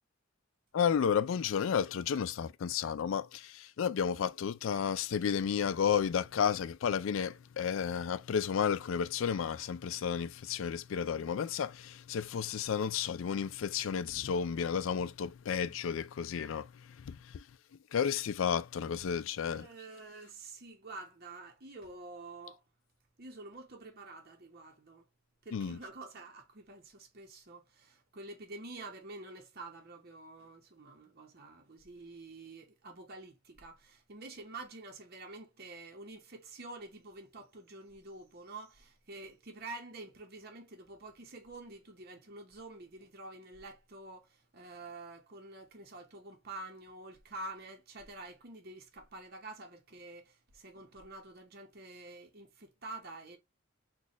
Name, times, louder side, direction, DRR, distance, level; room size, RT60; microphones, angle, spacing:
voice 1, 0.7-17.4 17.9-19.7 25.5-25.8, left 7 dB, 70° left, 0.4 m, -32 dB
voice 2, 19.5-22.6 23.2-25.0 25.4-53.4, right 2 dB, 50° right, 0.9 m, -48 dB
4.0 x 2.4 x 2.9 m
head